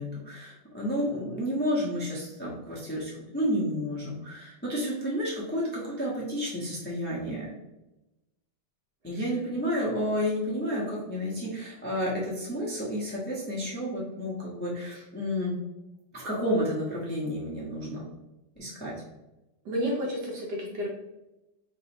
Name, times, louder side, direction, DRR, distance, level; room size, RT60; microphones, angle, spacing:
voice 1, 0.0-7.5 9.0-15.5 16.1-18.0 18.6-18.9, equal, 10° left, -6 dB, 0.6 m, -31 dB
voice 2, 19.6-20.9, equal, 65° right, -2 dB, 1.2 m, -31 dB
5.3 x 2.9 x 2.9 m, 0.97 s
omnidirectional pair, 2.3 m